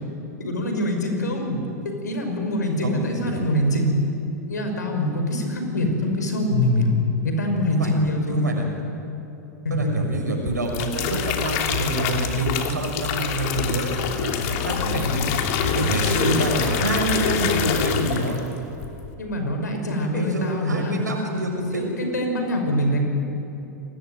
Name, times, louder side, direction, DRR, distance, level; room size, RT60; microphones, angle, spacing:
voice 1, 0.4-1.6 1.8-4.0 4.5-6.9 7.2-8.4 9.6-9.9 14.7-15.1 19.2-21.0 21.7-23.0, left 1 dB, 80° left, 4 dB, 5.6 m, -24 dB
voice 2, 2.8-3.5 7.8-8.0 8.3-8.6 9.7-15.3 15.6-18.4 19.9-21.9, right 2 dB, 85° right, 1 dB, 6.2 m, -27 dB
sound 1, 10.5-18.5 18.8-19.1, left 7 dB, 50° left, 2.8 m, -26 dB
28.0 x 19.5 x 9.4 m, 3.0 s
figure-of-eight pair, 95°, 9 cm